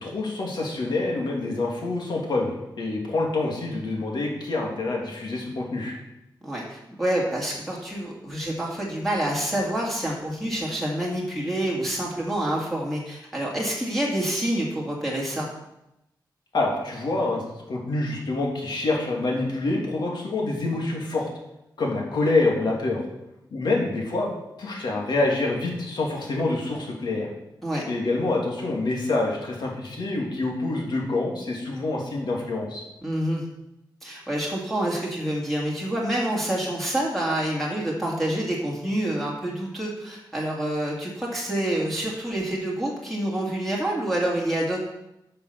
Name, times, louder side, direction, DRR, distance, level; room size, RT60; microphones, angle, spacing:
voice 1, 0.0-5.9 16.5-21.3 21.8-23.0 23.5-24.3 24.6-27.3 27.9-32.8, left 2 dB, 65° left, -1 dB, 2.7 m, -26 dB
voice 2, 6.4-15.5 27.6-27.8 33.0-33.4 34.0-44.8, right 1 dB, ahead, -4 dB, 2.2 m, -27 dB
10.0 x 5.8 x 6.8 m, 0.88 s
wide cardioid pair, 140°, 8 cm